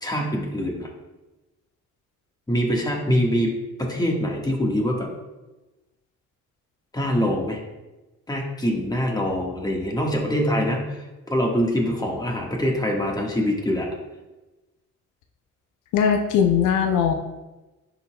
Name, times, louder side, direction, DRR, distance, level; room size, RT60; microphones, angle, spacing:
voice 1, 0.0-0.9 2.5-3.5 3.8-5.1 6.9-7.6 8.3-13.9, equal, 15° left, 0 dB, 1.4 m, -24 dB
voice 2, 15.9-17.1, left 7 dB, 85° left, 4 dB, 0.6 m, -19 dB
10.5 x 4.1 x 2.2 m, 1.1 s
cardioid pair, 90°, 30 cm